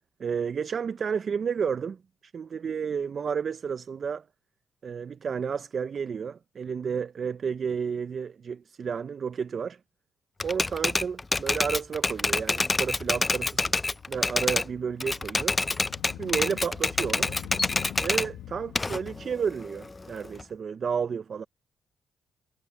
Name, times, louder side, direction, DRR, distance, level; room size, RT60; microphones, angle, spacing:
voice 1, 0.2-4.2 4.8-9.8 10.4-13.6 14.1-15.6 16.2-17.4 18.0-21.5, right 6 dB, 45° right, 0.5 m, -31 dB
Typewriter, 10.4-14.7 15.0-18.3 18.8-20.4, left 3 dB, 20° left, 0.4 m, -27 dB
Motorcycle, 12.6-19.3, left 13 dB, 85° left, 1.1 m, -45 dB
cardioid pair, 90°, 0 cm